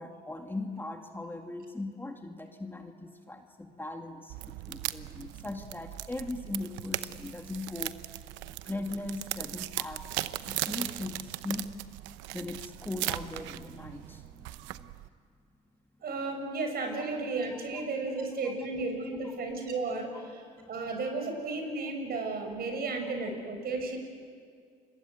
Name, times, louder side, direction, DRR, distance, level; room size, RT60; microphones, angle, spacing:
voice 1, 0.0-7.9 8.7-10.0 10.5-11.7 12.3-14.9 17.5-17.6 20.6-20.8, left 2 dB, 10° left, 4 dB, 2.2 m, -39 dB
sound 1, 4.3-15.1, right 16 dB, 80° right, 0.9 m, -38 dB
voice 2, 16.0-20.4 20.7-24.0, right 3 dB, 55° right, 4 dB, 6.8 m, -33 dB
29.5 x 23.0 x 8.3 m, 2.1 s
supercardioid pair, 80°, 19 cm